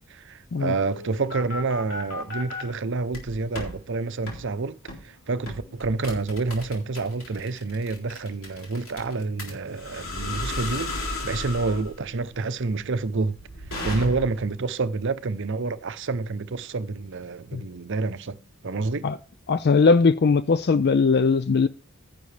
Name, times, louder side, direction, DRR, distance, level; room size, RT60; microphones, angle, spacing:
voice 1, 0.1-4.8 5.0-13.4 13.8-18.4 18.6-19.1, right 3 dB, 60° right, 0.7 m, -28 dB
sound 1, 0.8-2.6 3.1-3.7 4.3-4.4 4.9-5.1 5.5-14.5, left 2 dB, 70° left, 3.7 m, -34 dB
voice 2, 19.5-21.7, left 4 dB, 50° left, 0.4 m, -19 dB
10.5 x 10.5 x 3.3 m
head